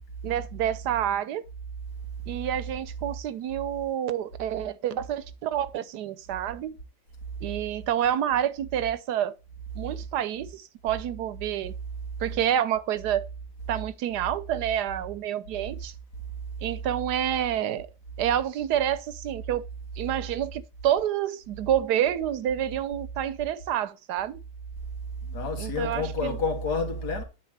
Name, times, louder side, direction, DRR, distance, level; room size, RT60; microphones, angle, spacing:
voice 1, 0.2-1.4 2.3-6.7 7.4-9.4 9.7-11.7 12.2-13.3 13.7-15.9 16.6-17.9 18.2-19.6 20.0-24.4 25.6-26.4, right 10 dB, 80° right, 1.3 m, -28 dB
voice 2, 25.2-27.2, left 3 dB, 80° left, 2.5 m, -29 dB
9.5 x 4.2 x 7.2 m
omnidirectional pair, 1.7 m